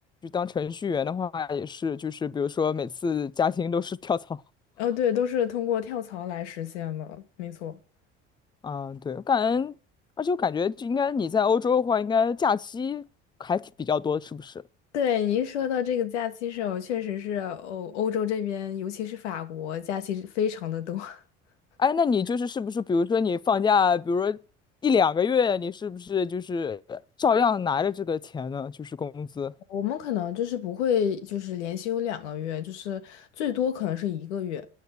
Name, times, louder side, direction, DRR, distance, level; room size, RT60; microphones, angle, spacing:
voice 1, 0.2-4.4 8.6-9.7 10.2-13.1 13.4-14.5 21.8-24.4 24.8-29.5, left 6 dB, 15° left, 0.4 m, -26 dB
voice 2, 4.8-7.8 14.9-21.2 29.7-34.7, left 9 dB, 80° left, 1.2 m, -29 dB
9.3 x 6.5 x 8.0 m
hypercardioid pair, 65°, 34 cm